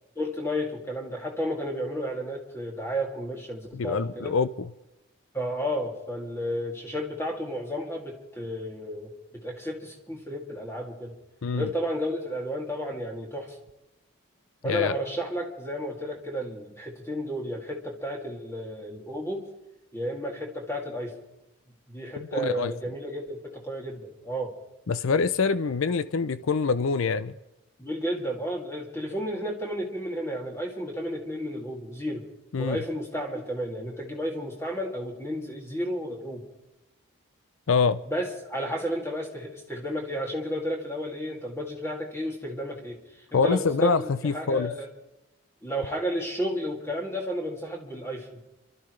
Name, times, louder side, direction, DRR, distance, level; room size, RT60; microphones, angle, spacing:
voice 1, 0.2-4.3 5.3-11.1 11.5-13.6 14.6-19.4 19.9-21.2 21.9-24.6 27.8-32.3 32.6-36.4 38.1-43.0 43.3-44.9 45.6-48.3, equal, 10° left, 0 dB, 2.4 m, -32 dB
voice 2, 3.7-4.7 11.4-11.7 14.6-14.9 22.3-22.7 24.9-27.3 32.5-32.8 37.7-38.0 43.3-44.7, left 5 dB, 70° left, 14 dB, 0.5 m, -25 dB
28.5 x 13.0 x 3.2 m, 0.97 s
head